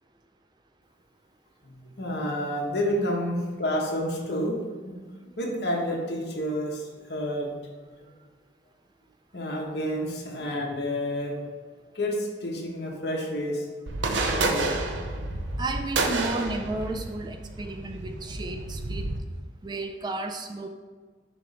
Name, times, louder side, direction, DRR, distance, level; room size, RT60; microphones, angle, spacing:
voice 1, 1.6-4.6 4.8-7.6 8.0-8.1 9.3-11.4 11.9-13.7 14.3-15.6, equal, 65° left, -1 dB, 1.1 m, -30 dB
sound 1, 13.9-19.2, right 3 dB, 80° right, 0.6 m, -30 dB
voice 2, 15.6-19.1 19.6-20.7, right 2 dB, 25° right, 6 dB, 0.3 m, -33 dB
6.8 x 3.1 x 5.0 m, 1.5 s
head